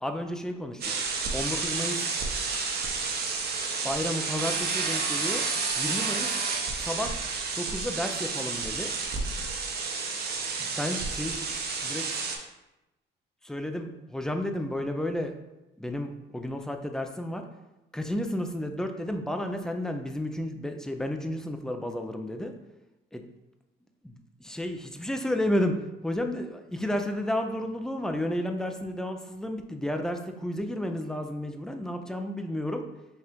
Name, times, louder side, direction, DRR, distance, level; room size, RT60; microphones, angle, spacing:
voice 1, 0.0-0.8 1.3-2.2 3.8-5.4 5.7-6.3 6.8-7.2 7.6-8.9 10.6-11.4 11.8-12.0 13.4-15.3 15.8-17.4 17.9-22.5 24.0-25.7 26.0-32.8, left 1 dB, 5° left, 5 dB, 0.4 m, -32 dB
sound 1, 0.8-12.4, right 4 dB, 55° right, 0.7 m, -30 dB
4.4 x 2.4 x 3.4 m, 0.98 s
cardioid pair, 90°, 20 cm